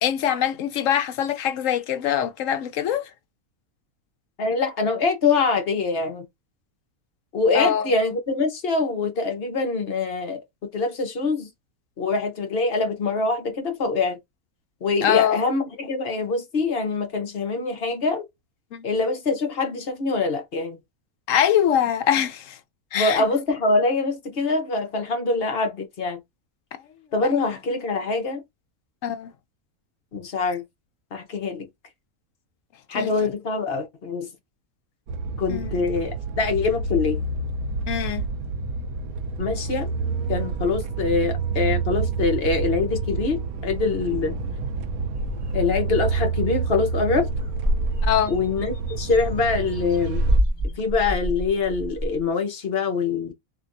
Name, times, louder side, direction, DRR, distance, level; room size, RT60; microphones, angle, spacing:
voice 1, 0.0-3.1 7.5-7.9 15.0-15.4 18.7-18.8 21.3-22.6 22.9-23.2 27.3-27.4 29.0-29.3 32.9-33.1 35.5-35.7 37.9-38.2 48.0-48.3, left 10 dB, 70° left, 0.9 m, -23 dB
voice 2, 4.4-6.3 7.3-10.4 10.7-11.5 12.0-14.2 14.8-18.2 18.8-20.8 22.9-26.2 27.1-28.4 30.1-30.6 31.1-31.7 32.9-34.3 35.4-37.2 39.4-39.9 40.3-44.3 45.5-47.3 48.3-50.2 50.8-53.3, left 4 dB, 50° left, 1.0 m, -24 dB
sound 1, 35.1-50.4, right 4 dB, 85° right, 1.1 m, -28 dB
sound 2, 45.2-45.9 46.4-46.5 46.7-47.0 47.2-52.2, right 1 dB, 25° left, 1.5 m, -27 dB
3.3 x 2.7 x 2.6 m
omnidirectional pair, 1.5 m